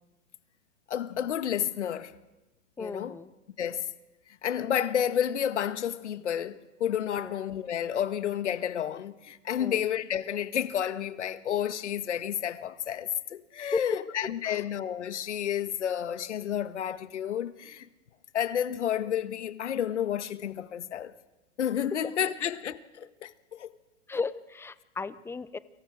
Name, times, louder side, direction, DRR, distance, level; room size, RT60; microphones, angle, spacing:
voice 1, 0.9-2.1 2.8-3.1 3.6-3.9 4.4-17.9 18.3-21.1 21.6-23.7, left 9 dB, 80° left, 1.8 m, -31 dB
voice 2, 2.8-3.3 7.1-7.4 9.6-9.8 13.7-14.6 24.1-25.6, left 4 dB, 5° left, 0.8 m, -35 dB
29.5 x 24.5 x 6.6 m
hypercardioid pair, 125°, 35 cm